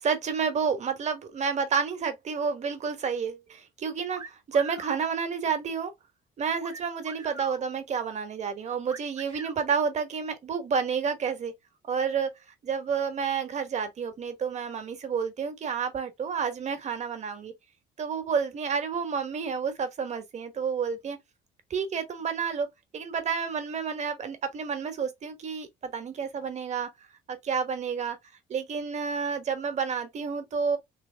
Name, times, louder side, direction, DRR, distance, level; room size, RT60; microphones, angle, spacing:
voice 1, 0.0-5.9 6.4-11.5 11.9-12.3 12.6-17.5 18.0-21.2 21.7-22.7 22.9-26.9 27.3-28.2 28.5-30.8, right 6 dB, 45° right, 1.2 m, -30 dB
sound 1, 4.1-5.0 6.6-7.6 8.9-9.6, right 4 dB, 25° right, 0.9 m, -42 dB
3.4 x 3.1 x 3.4 m
cardioid pair, 110°, 17 cm